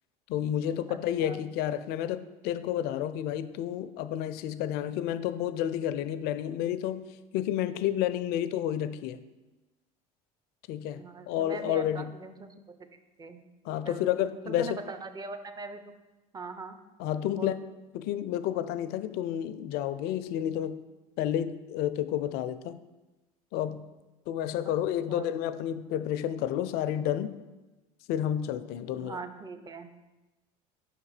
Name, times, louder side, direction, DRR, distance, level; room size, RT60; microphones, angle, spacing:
voice 1, 0.3-7.0 7.3-9.2 10.7-12.1 13.7-14.8 17.0-17.5 17.9-20.8 21.2-22.8 23.5-23.9 24.3-27.3 28.1-29.2, left 11 dB, 60° left, 13 dB, 0.4 m, -30 dB
voice 2, 0.9-1.4 11.0-12.5 13.2-13.5 13.8-14.1 14.5-15.8 16.3-16.8 17.4-17.5 24.7-24.8 25.1-25.4 29.0-29.9, right 4 dB, 20° right, 8 dB, 0.5 m, -41 dB
5.5 x 3.6 x 4.9 m, 1.1 s
hypercardioid pair, 80°, 19 cm